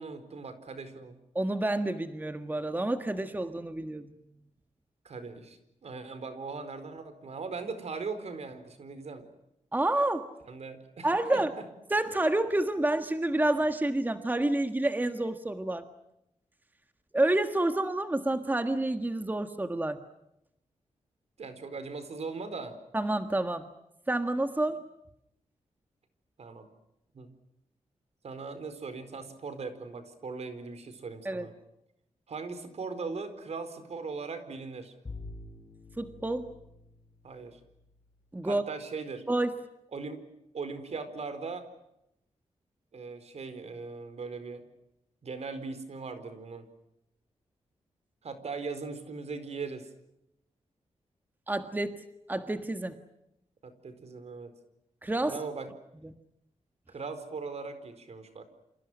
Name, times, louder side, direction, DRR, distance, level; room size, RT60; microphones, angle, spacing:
voice 1, 0.0-1.2 5.0-9.3 10.5-11.7 21.4-22.7 26.4-26.7 27.1-27.4 28.2-31.5 32.3-34.9 37.2-37.6 38.4-39.2 39.9-40.2 40.5-41.7 42.9-44.6 45.2-46.7 48.2-49.9 53.6-54.5 55.2-55.7 56.9-58.4, right 4 dB, 65° right, 11 dB, 4.5 m, -39 dB
voice 2, 1.3-4.1 9.7-10.3 11.0-11.5 11.9-15.9 17.1-20.0 22.9-23.7 24.1-24.8 31.2-31.5 36.0-36.5 38.3-38.6 39.3-39.6 51.5-52.0 52.3-53.0 55.0-55.4, right 1 dB, 15° right, 8 dB, 1.6 m, -28 dB
Bowed string instrument, 35.1-38.1, left 2 dB, 35° left, 5.8 m, -47 dB
29.5 x 27.0 x 6.3 m, 0.84 s
wide cardioid pair, 100°, 12 cm